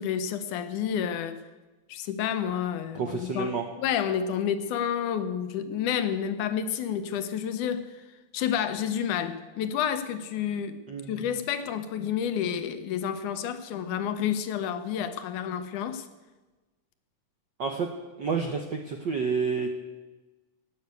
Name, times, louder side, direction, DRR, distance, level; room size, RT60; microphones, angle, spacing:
voice 1, 0.0-1.4 1.9-3.5 3.8-7.9 8.3-10.8 11.1-16.1, left 8 dB, 85° left, 10 dB, 2.5 m, -29 dB
voice 2, 2.9-3.6 10.9-11.3 17.6-17.9 18.2-19.7, right 5 dB, 70° right, 4 dB, 1.0 m, -29 dB
18.5 x 8.0 x 8.2 m, 1.2 s
omnidirectional pair, 3.4 m